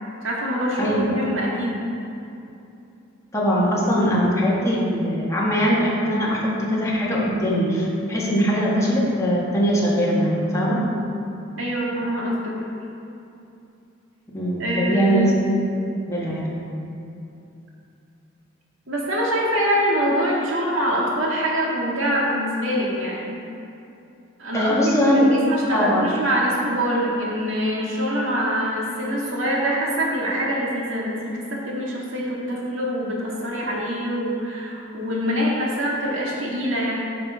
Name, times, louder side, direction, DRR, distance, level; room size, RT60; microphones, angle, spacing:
voice 1, 0.2-1.8 11.6-12.5 14.6-15.4 18.9-23.4 24.4-36.9, equal, 80° right, -4 dB, 1.8 m, -24 dB
voice 2, 0.8-1.2 3.3-10.8 14.3-15.5 16.1-16.6 24.5-25.4 25.7-26.0, equal, 15° left, -6 dB, 1.6 m, -21 dB
9.5 x 5.9 x 4.8 m, 2.7 s
head